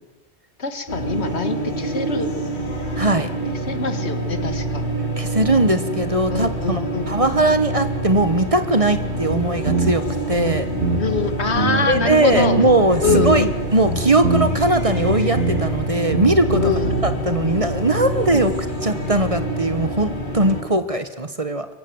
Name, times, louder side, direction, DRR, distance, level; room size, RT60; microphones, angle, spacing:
voice 1, 0.6-2.3 3.5-4.9 6.3-7.1 11.0-12.6 13.0-13.5 16.6-17.0, left 4 dB, 70° left, 10 dB, 2.0 m, -24 dB
sound 1, 0.9-20.6, right 1 dB, 45° left, 2.7 m, -26 dB
voice 2, 3.0-3.3 5.2-10.7 11.8-16.6 17.0-18.5 18.8-21.7, right 2 dB, 30° right, 10 dB, 1.3 m, -20 dB
sound 2, 9.3-11.2 11.6-12.8 13.1-13.6 13.8-14.7 15.0-15.8 16.1-17.2, right 3 dB, 80° right, 2.6 m, -23 dB
23.0 x 16.0 x 7.9 m, 1.0 s
omnidirectional pair, 1.1 m